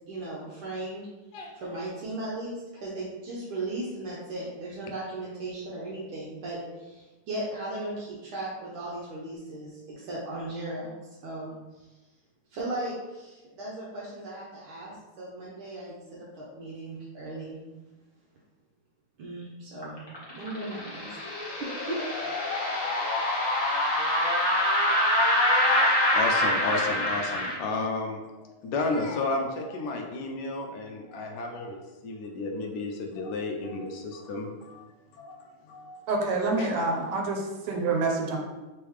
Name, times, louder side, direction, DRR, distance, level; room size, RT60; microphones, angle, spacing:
voice 1, 0.1-1.1 1.6-10.9 11.2-11.9 12.5-17.6 19.2-20.0 20.3-21.1 21.6-22.0, right 2 dB, 75° right, -6 dB, 1.5 m, -37 dB
sound 1, 19.8-27.5, left 1 dB, 35° left, 0.4 m, -25 dB
voice 2, 25.9-34.9 35.1-36.0 36.6-36.7, left 3 dB, 85° left, 2 dB, 0.9 m, -32 dB
voice 3, 36.1-38.4, right 3 dB, 90° right, 1 dB, 1.6 m, -27 dB
3.7 x 3.4 x 3.1 m, 1.1 s
omnidirectional pair, 2.4 m